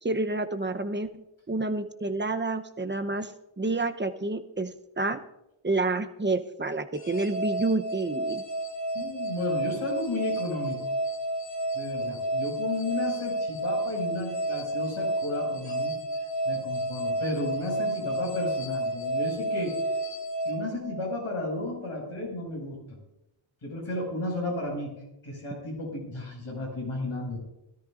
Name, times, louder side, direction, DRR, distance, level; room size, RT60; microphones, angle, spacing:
voice 1, 0.0-5.2 5.6-8.4, right 2 dB, 20° right, 8 dB, 0.8 m, -29 dB
sound 1, 7.0-21.3, right 1 dB, 55° left, 3.5 m, -31 dB
voice 2, 8.9-10.8 11.7-16.0 16.4-19.7 20.4-22.8 23.6-24.9 25.2-27.4, left 2 dB, 80° left, -2 dB, 5.9 m, -33 dB
21.0 x 13.0 x 2.6 m, 0.92 s
wide cardioid pair, 60°, 50 cm